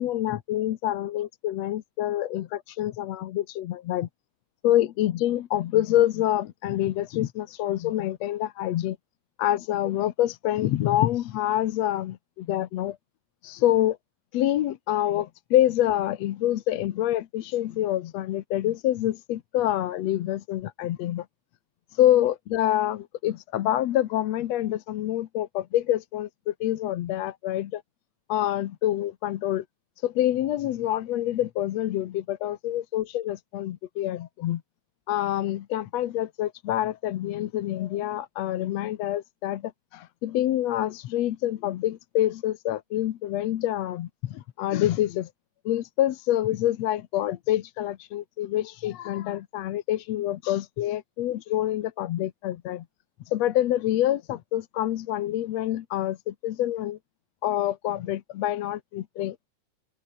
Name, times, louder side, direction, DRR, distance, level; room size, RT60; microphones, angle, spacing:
voice 1, 0.0-4.1 4.6-9.0 9.4-13.0 13.4-14.0 14.3-21.3 21.9-27.8 28.3-29.7 30.0-34.6 35.1-45.3 45.7-52.9 53.3-57.0 57.4-59.5, left 13 dB, 65° left, 1.9 m, -26 dB
omnidirectional pair, 3.6 m